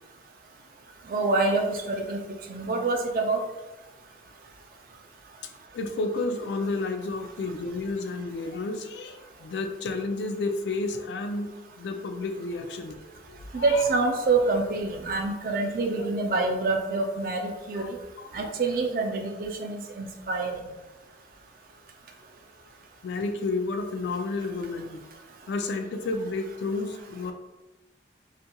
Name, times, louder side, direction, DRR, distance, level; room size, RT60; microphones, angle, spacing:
voice 1, 1.1-2.2 2.5-3.4 13.5-18.0 18.3-20.6, right 3 dB, 50° right, 3 dB, 0.4 m, -26 dB
voice 2, 5.4-13.9 17.7-17.9 18.2-18.5 23.0-25.0 25.5-27.3, left 3 dB, 80° left, 6 dB, 0.3 m, -31 dB
2.4 x 2.2 x 2.8 m, 1.0 s
head